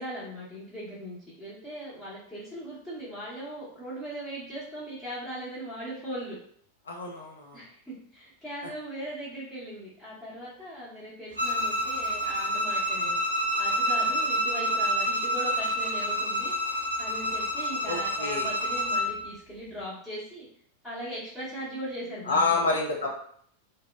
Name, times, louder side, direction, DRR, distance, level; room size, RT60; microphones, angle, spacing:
voice 1, 0.0-6.4 7.5-20.5 20.8-22.6, right 1 dB, 10° left, -12 dB, 0.9 m, -39 dB
voice 2, 6.9-7.6 14.1-14.2 17.9-18.5 22.2-23.1, left 3 dB, 70° left, -1 dB, 0.5 m, -28 dB
Bowed string instrument, 11.4-19.1, equal, 70° right, 0.6 m, -28 dB
2.8 x 2.0 x 2.3 m, 0.63 s
figure-of-eight pair, 90°, 0 cm